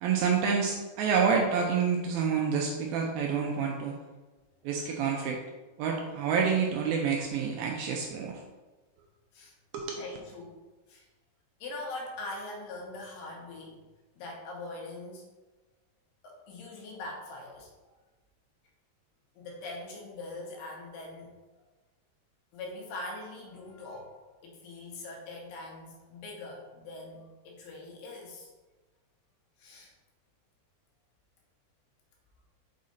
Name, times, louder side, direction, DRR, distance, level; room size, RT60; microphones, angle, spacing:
voice 1, 0.0-4.0 4.6-5.4 5.8-8.4 9.7-10.0, right 6 dB, 80° right, 1 dB, 2.2 m, -28 dB
voice 2, 9.9-10.6 10.9-11.1 11.6-13.8 14.2-15.3 16.2-18.0 19.4-21.3 22.5-24.1 24.4-28.5 29.6-29.9, left 2 dB, 75° left, -1 dB, 3.0 m, -42 dB
6.3 x 4.7 x 4.1 m, 1.2 s
omnidirectional pair, 4.7 m